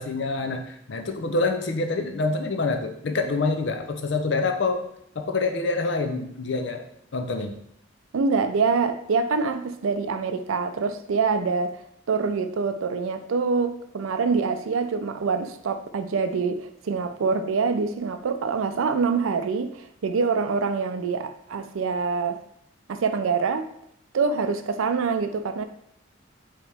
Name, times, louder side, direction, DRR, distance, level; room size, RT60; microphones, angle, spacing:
voice 1, 0.0-4.8 5.2-6.8 7.1-7.5, left 3 dB, 60° left, 5 dB, 0.5 m, -26 dB
voice 2, 8.1-11.7 12.1-22.4 22.9-23.7 24.1-25.6, right 5 dB, 85° right, 9 dB, 0.4 m, -25 dB
4.9 x 3.0 x 3.4 m, 0.73 s
head